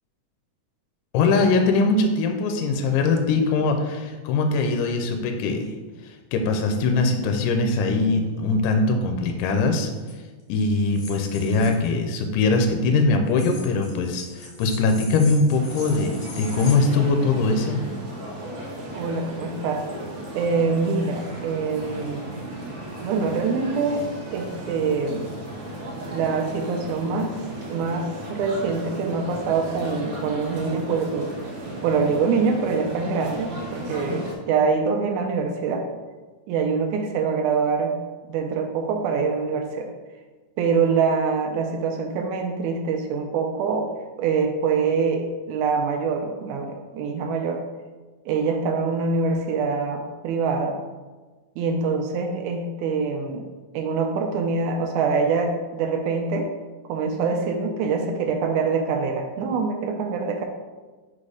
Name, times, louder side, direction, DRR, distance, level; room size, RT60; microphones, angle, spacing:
voice 1, 1.1-5.7 6.3-9.9 10.5-17.8 33.9-34.2, left 3 dB, 85° left, 4 dB, 2.1 m, -22 dB
sound 1, 10.0-10.1 10.9-11.9 13.3-16.7, left 3 dB, 50° left, 2.1 m, -41 dB
sound 2, 15.5-34.3, right 1 dB, 60° right, 1.2 m, -35 dB
voice 2, 18.9-19.9 20.3-22.3 23.0-24.1 24.3-25.3 26.1-27.4 27.7-31.3 31.8-35.8 36.5-38.0 38.3-39.9 40.6-43.9 44.2-47.6 48.3-50.8 51.6-53.4 53.7-56.5 56.9-60.5, right 5 dB, 80° right, 3 dB, 1.9 m, -24 dB
4.9 x 4.3 x 4.9 m, 1.3 s
omnidirectional pair, 3.7 m